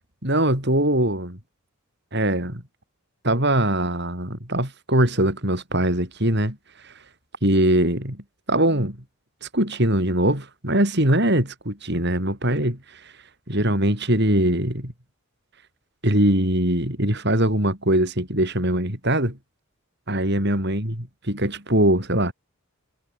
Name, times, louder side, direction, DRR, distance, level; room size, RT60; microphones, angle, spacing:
voice 1, 0.2-1.4 2.1-2.6 3.2-6.6 7.4-8.2 8.5-9.0 9.5-12.8 13.5-14.9 16.0-19.4 20.1-22.3, right 1 dB, 50° right, 7.9 m, -22 dB
head